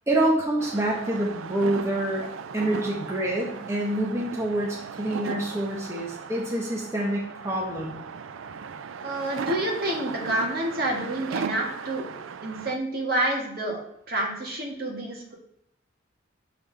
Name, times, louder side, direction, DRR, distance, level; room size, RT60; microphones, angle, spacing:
voice 1, 0.1-2.3 2.5-7.9, right 1 dB, 15° right, -2 dB, 1.0 m, -27 dB
sound 1, 0.6-12.8, right 6 dB, 85° right, 0.4 m, -37 dB
voice 2, 9.0-12.1 12.4-13.8 14.1-15.3, right 1 dB, 50° right, -1 dB, 1.6 m, -28 dB
6.8 x 5.5 x 3.4 m, 0.74 s
head